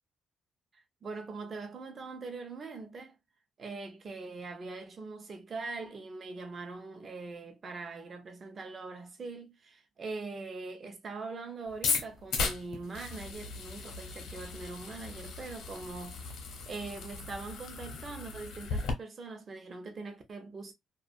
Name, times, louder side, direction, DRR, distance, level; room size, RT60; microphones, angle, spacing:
voice 1, 1.0-3.2 3.6-16.2 16.7-20.7, right 3 dB, 45° right, 0.6 m, -42 dB
sound 1, 11.7-18.9, left 4 dB, 80° left, 0.7 m, -36 dB
2.3 x 2.2 x 2.5 m
cardioid pair, 90°, 0 cm